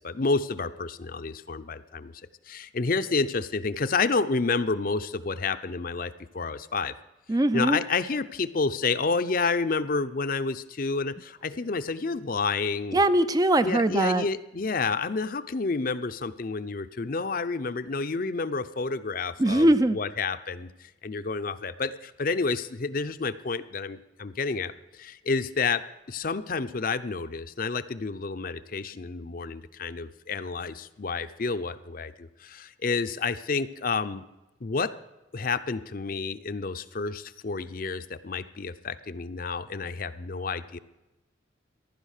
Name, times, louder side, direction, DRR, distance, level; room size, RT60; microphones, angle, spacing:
voice 1, 0.0-2.1 2.5-6.9 7.5-13.0 13.6-34.2 34.6-34.9 35.3-40.8, left 4 dB, 45° left, 12 dB, 0.6 m, -30 dB
voice 2, 7.3-7.8 12.9-14.2 19.4-20.0, right 1 dB, 20° right, 12 dB, 0.4 m, -21 dB
15.5 x 11.5 x 6.6 m, 1.0 s
head